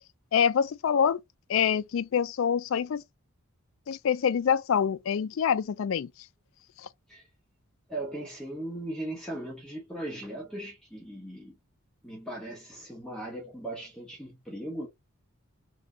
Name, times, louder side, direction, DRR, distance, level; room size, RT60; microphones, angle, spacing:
voice 1, 0.3-1.2 1.5-3.0 3.9-6.1, left 7 dB, 65° left, 0.3 m, -25 dB
voice 2, 7.9-11.6 12.0-14.9, right 1 dB, 5° left, 1.0 m, -38 dB
3.3 x 2.8 x 3.8 m
head